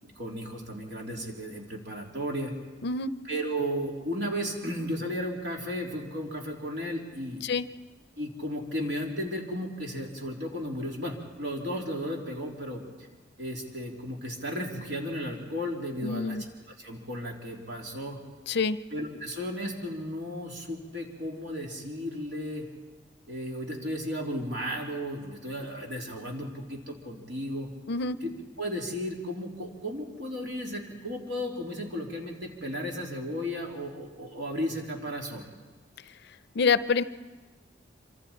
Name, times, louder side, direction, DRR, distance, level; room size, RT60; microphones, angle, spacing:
voice 1, 0.0-2.5 3.2-7.4 8.2-12.8 13.4-16.4 16.7-18.2 18.9-22.6 23.3-27.7 28.2-28.3 28.6-35.5, equal, 65° right, 0 dB, 3.4 m, -34 dB
voice 2, 16.0-16.4 18.5-18.8 27.9-28.2 36.5-37.0, left 4 dB, 60° left, 14 dB, 0.5 m, -26 dB
26.5 x 25.0 x 4.4 m, 1.2 s
head